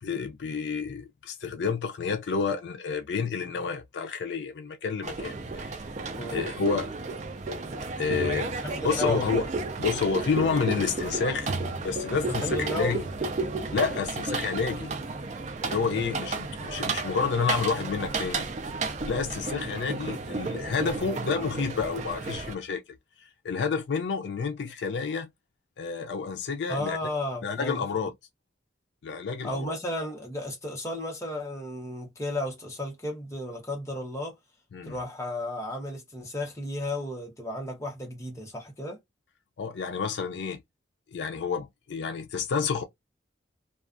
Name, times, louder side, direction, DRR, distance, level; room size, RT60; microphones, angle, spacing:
voice 1, 0.0-5.8 6.3-6.9 8.0-8.5 8.8-9.4 9.8-11.5 11.8-13.0 13.7-14.9 15.6-18.5 19.0-22.8 23.4-25.3 25.8-27.0 27.4-28.1 29.0-29.7 34.7-35.0 39.6-40.6 41.1-42.8, left 5 dB, 70° left, 0.4 m, -29 dB
sound 1, 5.0-22.5, right 3 dB, 40° right, 0.4 m, -33 dB
voice 2, 8.6-9.5 12.3-13.0 26.7-28.1 29.4-34.3 34.8-39.0, left 1 dB, 15° left, 0.8 m, -33 dB
2.3 x 2.3 x 2.4 m
head